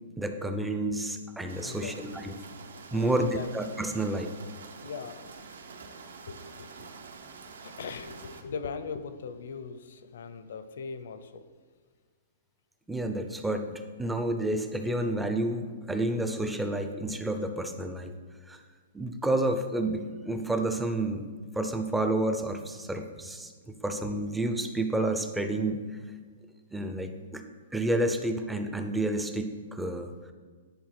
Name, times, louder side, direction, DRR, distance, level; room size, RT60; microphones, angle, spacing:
voice 1, 0.2-2.3 2.9-4.3 12.9-18.1 18.5-18.6 18.9-21.2 21.5-23.5 23.8-25.8 26.7-27.4 27.7-30.1, right 1 dB, 5° right, 6 dB, 0.4 m, -30 dB
sound 1, 1.5-8.4, right 4 dB, 90° right, 0.9 m, -47 dB
voice 2, 1.6-2.0 2.9-3.5 4.8-5.3 6.3-6.7 7.6-11.5, left 5 dB, 60° left, 11 dB, 0.6 m, -40 dB
10.5 x 4.4 x 5.8 m, 1.5 s
hypercardioid pair, 175°, 0 cm